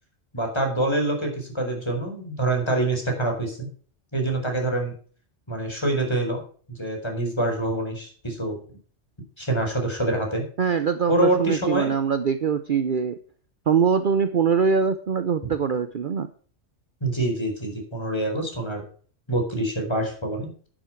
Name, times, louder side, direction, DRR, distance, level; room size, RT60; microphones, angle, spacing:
voice 1, 0.3-3.7 4.1-4.9 5.5-6.4 6.7-8.6 9.4-10.4 11.1-11.9 17.0-18.8 19.3-20.5, right 1 dB, 20° left, 2 dB, 4.5 m, -25 dB
voice 2, 10.6-13.2 13.7-16.3, right 6 dB, 50° right, 11 dB, 0.8 m, -23 dB
11.0 x 10.0 x 4.6 m, 0.43 s
omnidirectional pair, 1.2 m